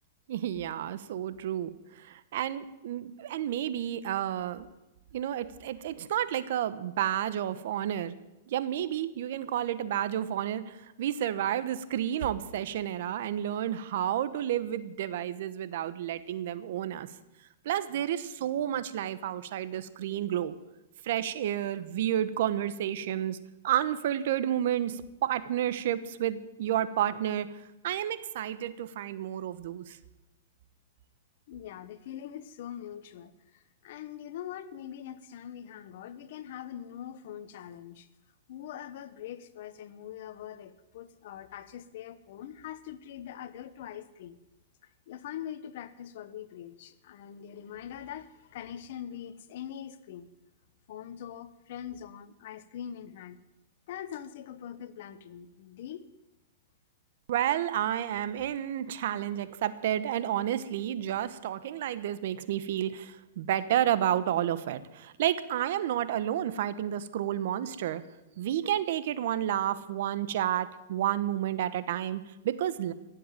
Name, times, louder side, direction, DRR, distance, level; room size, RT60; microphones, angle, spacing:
voice 1, 0.3-4.7 5.1-8.2 8.5-17.1 17.6-20.5 21.0-23.4 23.6-27.5 27.8-30.0 57.3-68.0 68.4-72.9, right 11 dB, 60° right, 14 dB, 1.0 m, -31 dB
voice 2, 31.5-38.1 38.5-44.4 44.8-50.3 50.9-53.4 53.9-56.1, left 10 dB, 60° left, 14 dB, 1.1 m, -43 dB
15.5 x 7.8 x 9.0 m, 1.0 s
hypercardioid pair, 140°, 0 cm